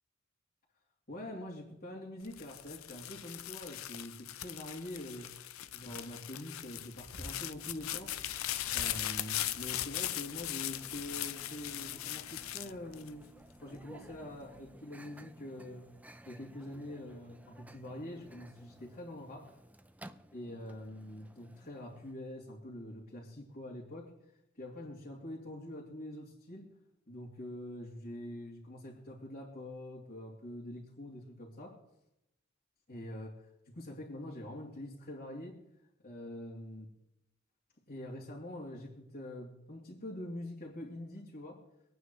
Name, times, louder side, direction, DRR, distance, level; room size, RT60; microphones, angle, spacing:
voice 1, 1.1-5.3 5.7-8.1 8.7-13.3 13.6-15.9 16.2-19.6 20.3-24.1 24.6-26.7 27.1-31.8 32.9-35.6 36.0-36.9 37.9-41.6, left 1 dB, 45° left, -7 dB, 2.7 m, -45 dB
sound 1, 2.2-13.6 14.1-14.7, left 13 dB, 85° left, 0.6 m, -39 dB
Microwave oven, 7.1-22.1, right 1 dB, 5° right, 0.5 m, -55 dB
25.5 x 9.2 x 3.2 m, 0.82 s
head